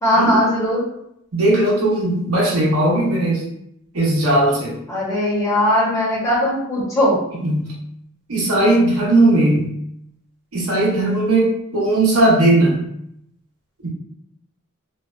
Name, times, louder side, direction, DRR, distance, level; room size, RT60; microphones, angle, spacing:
voice 1, 0.0-0.8 4.9-7.2, left 1 dB, 15° left, -7 dB, 0.9 m, -19 dB
voice 2, 1.3-3.4 3.9-4.8 7.4-7.7 8.3-9.7 10.5-12.8 13.8-13.9, right 2 dB, 80° right, -4 dB, 0.9 m, -17 dB
2.5 x 2.1 x 2.3 m, 0.75 s
head